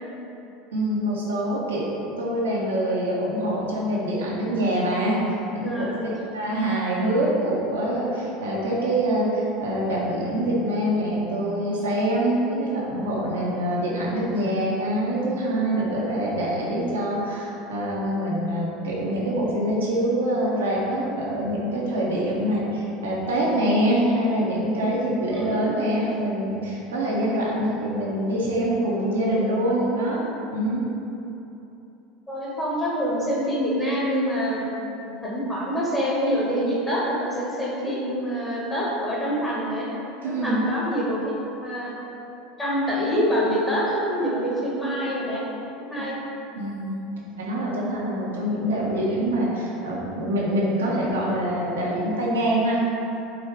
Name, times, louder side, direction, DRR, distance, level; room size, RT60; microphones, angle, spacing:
voice 1, 0.7-1.8 2.2-5.2 5.5-30.2 30.5-30.8 40.2-40.6 46.6-47.0 47.3-52.9, right 1 dB, 85° right, -5 dB, 0.7 m, -25 dB
voice 2, 5.7-6.0 25.3-25.4 32.3-39.9 40.2-41.2 41.6-42.0 42.6-45.4 45.8-46.2, equal, 15° left, -6 dB, 1.1 m, -26 dB
4.7 x 2.3 x 3.3 m, 2.9 s
hypercardioid pair, 85°, 0 cm